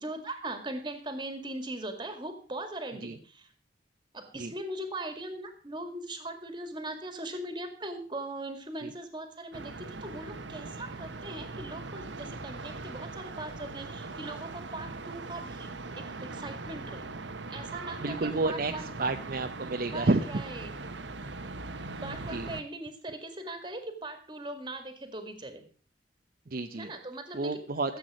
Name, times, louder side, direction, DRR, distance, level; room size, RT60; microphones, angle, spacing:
voice 1, 0.0-3.5 4.1-15.7 15.9-17.2 17.5-19.1 19.9-20.7 21.9-25.6 26.8-27.6 27.9-28.0, right 1 dB, 25° right, 8 dB, 2.0 m, -40 dB
sound 1, 9.5-22.6, right 3 dB, 85° right, 1.1 m, -40 dB
voice 2, 18.0-20.4 22.2-22.5 26.5-26.9 27.3-28.0, right 2 dB, 50° right, 6 dB, 0.7 m, -30 dB
14.5 x 8.2 x 6.3 m, 0.41 s
head